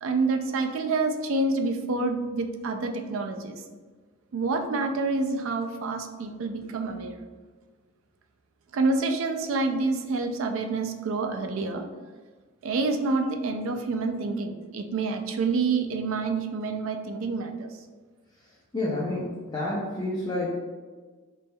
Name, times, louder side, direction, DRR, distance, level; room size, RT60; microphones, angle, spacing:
voice 1, 0.0-3.6 4.3-7.2 8.7-11.9 12.6-17.7, right 3 dB, 65° right, 5 dB, 0.4 m, -27 dB
voice 2, 18.7-20.5, left 2 dB, 20° left, -6 dB, 0.5 m, -29 dB
4.0 x 3.3 x 2.2 m, 1.4 s
head